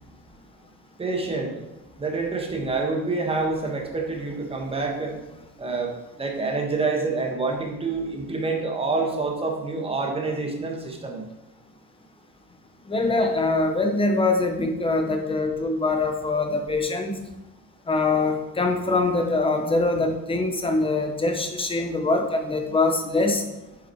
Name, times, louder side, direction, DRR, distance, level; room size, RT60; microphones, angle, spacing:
voice 1, 1.0-1.7 2.0-5.2 5.6-5.9 6.2-11.3, right 3 dB, 15° right, 1 dB, 1.3 m, -27 dB
voice 2, 12.9-17.1 17.9-23.4, left 3 dB, 15° left, 4 dB, 0.9 m, -23 dB
9.2 x 5.7 x 4.5 m, 0.99 s
cardioid pair, 165°, 38 cm